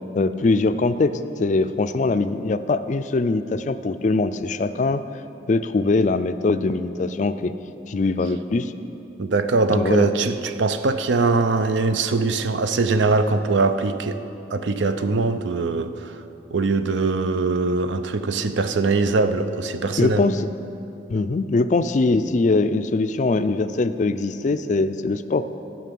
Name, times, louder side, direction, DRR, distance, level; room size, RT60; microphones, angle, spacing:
voice 1, 0.1-5.0 5.5-7.5 7.9-8.7 9.7-10.1 20.0-20.5 21.1-25.4, left 3 dB, 40° left, 11 dB, 0.4 m, -22 dB
voice 2, 9.2-14.2 14.5-16.1 16.5-20.3, right 3 dB, 75° right, 10 dB, 0.6 m, -22 dB
12.5 x 6.1 x 7.6 m, 2.9 s
head